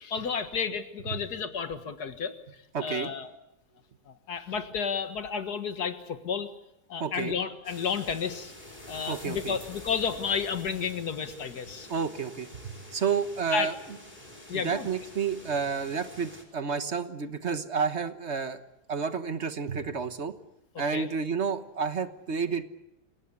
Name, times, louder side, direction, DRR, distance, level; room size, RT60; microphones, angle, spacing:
voice 1, 0.0-2.3 2.8-3.3 4.1-6.5 6.9-8.5 8.9-11.9 13.5-13.7 14.5-14.9 20.9-21.1, left 6 dB, 75° left, 9 dB, 2.1 m, -31 dB
voice 2, 2.7-3.1 7.0-7.3 9.1-9.6 11.9-12.5 12.9-13.7 14.5-18.6 18.9-20.3 20.8-22.6, right 6 dB, 45° right, 10 dB, 1.4 m, -30 dB
sound 1, 7.6-16.4, left 1 dB, 25° left, 4.6 m, -47 dB
26.5 x 18.0 x 8.7 m, 0.88 s
omnidirectional pair, 1.7 m